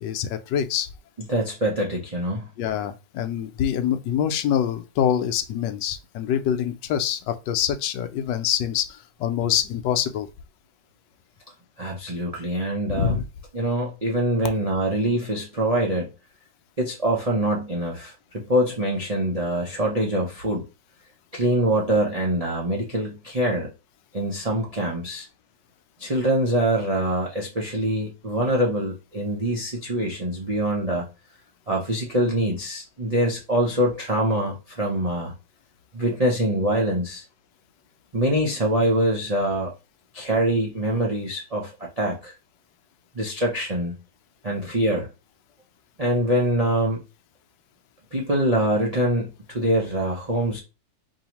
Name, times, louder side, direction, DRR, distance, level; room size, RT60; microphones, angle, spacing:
voice 1, 0.0-0.9 2.6-10.3 12.9-13.2, left 9 dB, 80° left, 1.2 m, -25 dB
voice 2, 1.3-2.5 11.8-13.2 13.5-16.1 16.8-20.6 21.3-23.7 24.1-25.3 26.0-31.1 31.7-35.3 35.9-37.2 38.1-39.7 40.1-42.3 43.1-44.0 44.4-45.1 46.0-47.0 48.1-50.6, right 1 dB, 50° right, 0.4 m, -24 dB
4.6 x 2.8 x 2.9 m
omnidirectional pair, 1.9 m